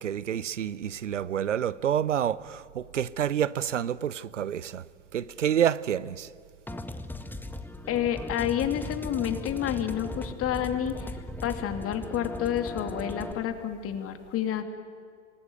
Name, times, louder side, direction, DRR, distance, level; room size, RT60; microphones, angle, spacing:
voice 1, 0.0-4.8 5.1-6.3, right 9 dB, 85° right, 0.7 m, -28 dB
sound 1, 6.7-13.3, left 2 dB, 5° left, 1.7 m, -38 dB
voice 2, 7.9-11.1 11.4-14.6, left 10 dB, 40° left, 2.8 m, -29 dB
27.5 x 19.5 x 9.4 m
figure-of-eight pair, 85°, 36 cm